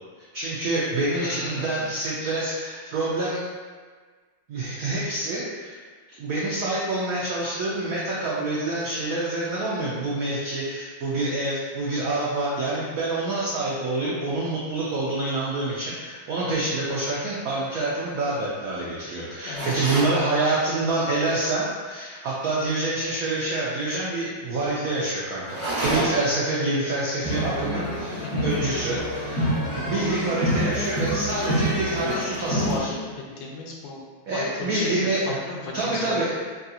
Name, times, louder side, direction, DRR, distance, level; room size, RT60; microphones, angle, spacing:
voice 1, 0.3-3.4 4.5-5.8 6.2-29.6 29.9-32.9 34.3-35.2 35.7-36.3, right 2 dB, 85° right, -7 dB, 0.7 m, -27 dB
voice 2, 1.1-1.9 19.5-19.9 28.2-28.5 32.6-34.0 34.3-36.3, left 3 dB, 80° left, -1 dB, 1.3 m, -34 dB
sound 1, 19.5-20.2 25.4-26.4, right 1 dB, 40° right, 0.4 m, -28 dB
sound 2, 27.2-32.8, equal, 45° left, 0.8 m, -27 dB
3.6 x 2.4 x 2.7 m, 1.5 s
omnidirectional pair, 2.1 m